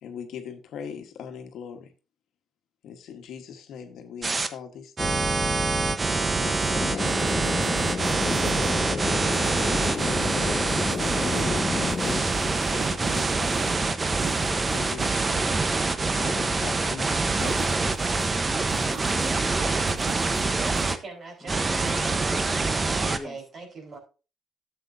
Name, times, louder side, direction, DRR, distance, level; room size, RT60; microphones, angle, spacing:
voice 1, 0.0-1.9 2.8-5.4 6.1-7.2 8.3-9.2 9.7-10.8 11.2-15.6 16.1-17.7, left 7 dB, 80° left, 1.2 m, -40 dB
sound 1, 4.2-4.5 5.0-21.0 21.5-23.2, right 3 dB, 30° right, 0.9 m, -25 dB
sound 2, 6.5-6.7 6.9-8.8 9.3-10.3 10.7-11.6 11.9-13.7 14.1-15.2 17.4-18.3 18.7-19.5 19.9-20.9 21.7-22.2, right 6 dB, 75° right, 1.3 m, -41 dB
sound 3, 6.7-12.2, left 5 dB, 40° left, 0.3 m, -31 dB
voice 2, 18.8-20.7 21.4-21.7 22.2-22.4 23.1-23.4, left 3 dB, 20° left, 1.5 m, -44 dB
voice 3, 20.4-22.3 22.9-24.0, right 3 dB, 55° right, 4.1 m, -41 dB
12.0 x 7.8 x 2.6 m
cardioid pair, 90°, 0 cm